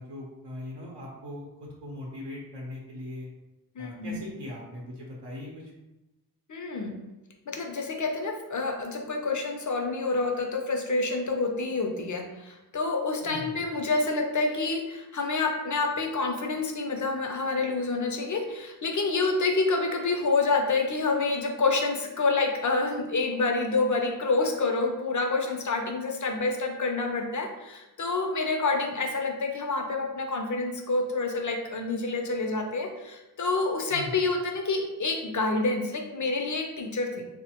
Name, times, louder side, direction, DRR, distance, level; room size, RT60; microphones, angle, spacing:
voice 1, 0.0-3.3 3.8-5.7 13.2-13.6 33.9-34.2, left 1 dB, 80° right, -3 dB, 0.7 m, -40 dB
voice 2, 3.8-4.2 6.5-6.9 7.5-37.1, left 3 dB, 45° left, 3 dB, 0.5 m, -28 dB
3.1 x 2.1 x 2.8 m, 1.0 s
wide cardioid pair, 75°, 41 cm